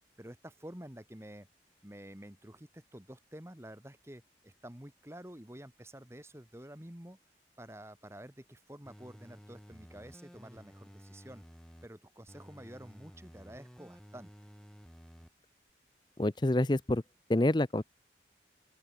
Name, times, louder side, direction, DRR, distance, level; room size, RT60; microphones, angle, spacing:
voice 1, 0.2-1.5 1.8-7.2 7.6-11.4 11.8-14.5, right 1 dB, 15° right, 1.9 m, -49 dB
sound 1, 8.9-11.9 12.3-15.3 15.7-15.8, equal, 5° left, 1.5 m, -54 dB
voice 2, 16.2-17.0 17.3-17.8, left 1 dB, 25° left, 0.7 m, -27 dB
open air
head